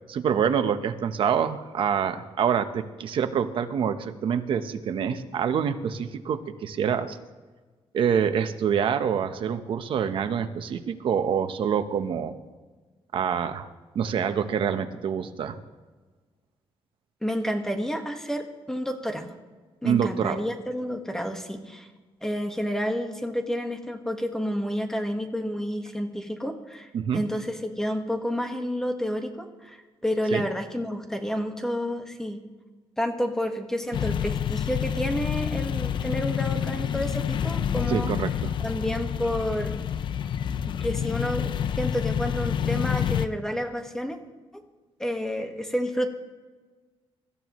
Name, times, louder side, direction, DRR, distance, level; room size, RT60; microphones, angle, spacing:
voice 1, 0.1-7.2 7.9-12.3 13.1-13.7 13.9-15.6 19.8-20.4 26.9-27.2 30.3-30.4 37.9-38.5, right 7 dB, 60° right, 8 dB, 1.1 m, -26 dB
voice 2, 17.2-19.3 19.8-21.9 22.2-26.9 27.1-32.4 33.0-38.1 38.6-39.7 40.8-44.2 45.0-46.1, equal, 5° left, 4 dB, 1.6 m, -30 dB
sound 1, 33.9-43.3, left 8 dB, 55° left, 0.6 m, -28 dB
24.5 x 14.0 x 3.2 m, 1.3 s
cardioid pair, 135°, 10 cm